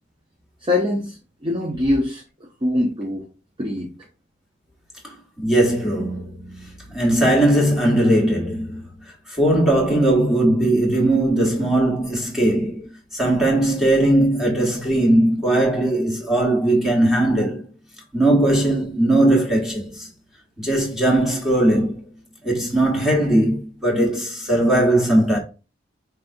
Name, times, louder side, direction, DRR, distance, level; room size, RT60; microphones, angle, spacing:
voice 1, 0.6-3.3 3.6-3.9, left 1 dB, 25° right, 0.6 m, -23 dB
voice 2, 5.0-8.8 9.3-12.9 13.1-17.6 18.1-20.1 20.6-22.1 22.4-25.4, right 1 dB, ahead, 1.1 m, -19 dB
5.1 x 3.3 x 2.6 m
head